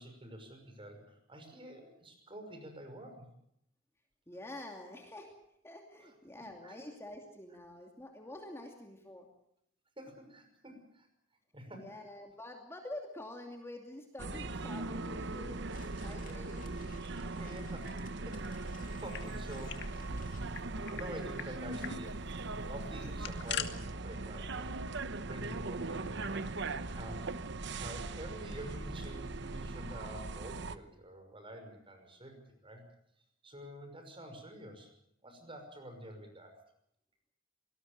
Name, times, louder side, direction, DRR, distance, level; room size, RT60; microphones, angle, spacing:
voice 1, 0.0-3.3 6.0-6.8 10.0-11.1 11.5-12.0 17.4-20.0 20.9-22.3 22.6-24.9 25.2-26.6 26.9-27.4 27.8-32.8 33.4-34.9 35.2-36.5, right 1 dB, 25° right, 6 dB, 6.0 m, -48 dB
voice 2, 4.3-5.3 5.6-9.3 11.7-15.6 16.0-16.7, left 1 dB, 15° left, 2 dB, 2.6 m, -47 dB
sound 1, 14.2-30.8, right 3 dB, 65° right, 1.1 m, -40 dB
sound 2, 15.3-20.5, left 5 dB, 45° left, 2.5 m, -58 dB
sound 3, 18.8-19.9 20.2-20.3 20.5-21.1 21.4-21.5 21.8-22.0 23.0-23.7, left 9 dB, 60° left, 2.0 m, -41 dB
26.0 x 19.5 x 6.7 m, 0.74 s
head